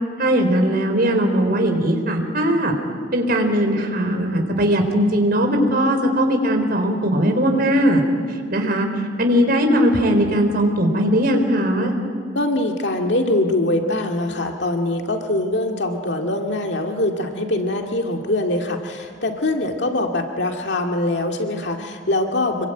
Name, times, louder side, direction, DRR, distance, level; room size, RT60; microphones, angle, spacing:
voice 1, 0.2-2.8 3.1-8.0 8.5-8.9 9.2-11.9, equal, 55° right, 4 dB, 4.1 m, -19 dB
voice 2, 12.3-22.7, left 1 dB, 70° left, 3 dB, 2.2 m, -23 dB
26.5 x 23.0 x 9.2 m, 2.1 s
head